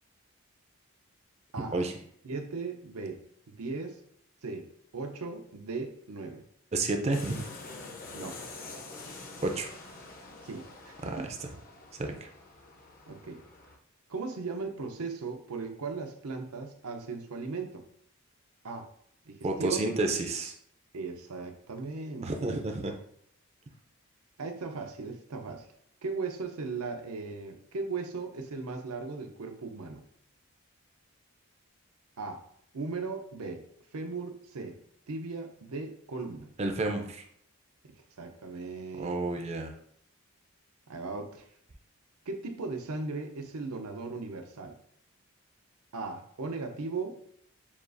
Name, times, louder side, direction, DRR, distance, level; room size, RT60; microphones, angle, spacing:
voice 1, 2.2-3.2 3.5-4.0 4.4-4.7 4.9-6.4 8.1-8.4 10.4-11.3 13.1-13.4 14.1-17.8 18.6-18.9 19.3-19.9 20.9-22.6 24.4-25.7 26.0-30.0 32.2-32.4 32.7-33.6 33.9-34.8 35.1-36.5 37.8-39.3 40.9-41.5 42.3-44.8 45.9-47.1, right 4 dB, 85° right, 5 dB, 0.6 m, -37 dB
voice 2, 6.7-7.5 9.4-9.7 11.0-11.2 11.9-12.3 19.4-20.5 22.2-22.9 36.6-37.2 39.0-39.7, right 2 dB, 30° right, 4 dB, 0.4 m, -30 dB
sound 1, 7.1-13.8, left 3 dB, 40° left, 0.6 m, -46 dB
7.1 x 2.4 x 2.5 m, 0.66 s
head